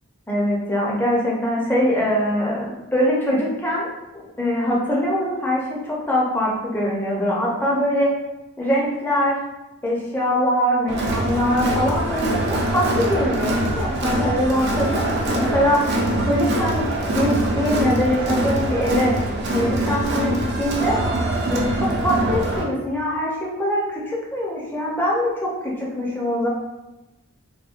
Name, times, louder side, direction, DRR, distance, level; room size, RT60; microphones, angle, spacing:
voice 1, 0.3-8.1 8.6-9.4 9.8-15.9 16.2-16.9 17.2-19.1 19.5-21.0 21.5-26.5, equal, 10° left, -5 dB, 0.5 m, -22 dB
Crowd, 10.9-22.6, right 1 dB, 50° right, 0.4 m, -23 dB
3.5 x 2.1 x 2.4 m, 1.0 s
head